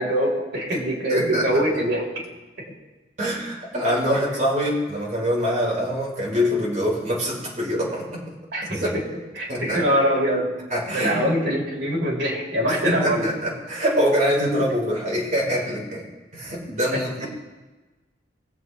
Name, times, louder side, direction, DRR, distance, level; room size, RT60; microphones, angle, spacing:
voice 1, 0.0-2.0 8.5-8.6 9.4-10.5 10.9-13.2, equal, 75° right, -3 dB, 3.7 m, -23 dB
voice 2, 1.1-1.8 3.2-8.3 8.7-8.9 9.5-9.8 10.7-11.3 12.7-16.0 16.3-17.3, equal, 45° right, -4 dB, 4.3 m, -24 dB
21.5 x 7.7 x 3.1 m, 1.2 s
head